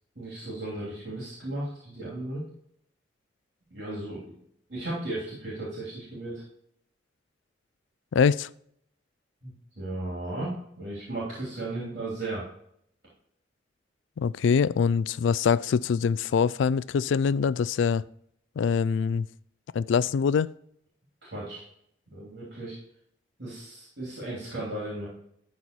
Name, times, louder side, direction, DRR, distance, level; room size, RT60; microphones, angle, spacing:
voice 1, 0.1-2.4 3.7-4.3 4.7-6.4 9.4-12.4 21.2-21.6 22.1-22.8 23.4-25.1, right 2 dB, 65° right, -6 dB, 3.3 m, -35 dB
voice 2, 8.1-8.5 14.2-18.0 18.6-19.3 19.7-20.5, left 6 dB, 80° left, 19 dB, 0.3 m, -24 dB
12.0 x 4.3 x 4.6 m, 0.70 s
head